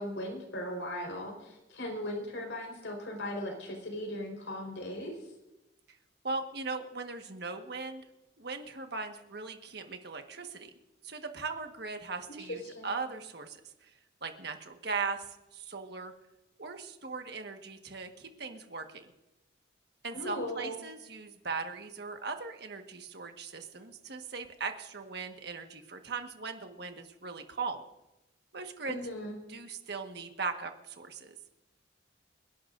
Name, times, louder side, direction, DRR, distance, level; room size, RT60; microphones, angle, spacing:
voice 1, 0.0-5.1 12.3-13.0 20.1-20.8 28.9-29.3, left 1 dB, 75° left, 2 dB, 4.5 m, -38 dB
voice 2, 6.2-8.0 8.4-10.7 11.0-13.9 14.2-16.1 16.6-19.1 20.0-27.8 28.5-29.0 29.5-31.3, right 4 dB, 55° right, 5 dB, 1.5 m, -39 dB
29.5 x 11.5 x 2.6 m, 0.96 s
head